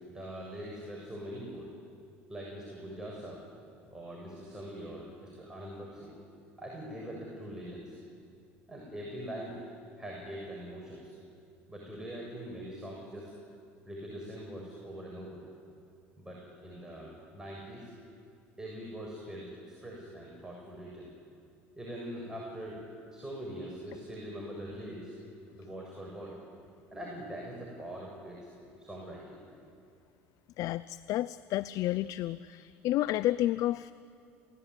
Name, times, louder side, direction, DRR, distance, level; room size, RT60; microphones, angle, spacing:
voice 1, 0.1-1.7 2.3-3.4 3.9-6.1 6.6-8.0 8.7-9.6 10.0-11.1 11.7-13.4 13.9-15.4 16.2-17.9 18.6-21.1 21.7-22.8 23.1-25.1 25.5-26.4 26.9-28.5 28.8-29.4, equal, 10° right, -3 dB, 7.5 m, -43 dB
voice 2, 30.6-33.9, left 14 dB, 60° left, 16 dB, 0.6 m, -31 dB
28.0 x 18.5 x 9.8 m, 2.5 s
hypercardioid pair, 75°, 7 cm